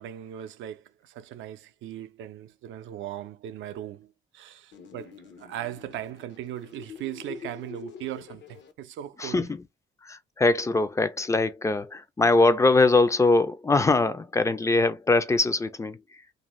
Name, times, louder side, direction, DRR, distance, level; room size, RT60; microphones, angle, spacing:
voice 1, 0.0-9.5, right 12 dB, 75° right, 0.4 m, -38 dB
sound 1, 4.7-8.7, left 5 dB, 65° left, 0.7 m, -45 dB
voice 2, 9.2-9.6 10.0-16.0, left 3 dB, 15° left, 0.4 m, -22 dB
2.6 x 2.1 x 3.0 m
cardioid pair, 90°, 20 cm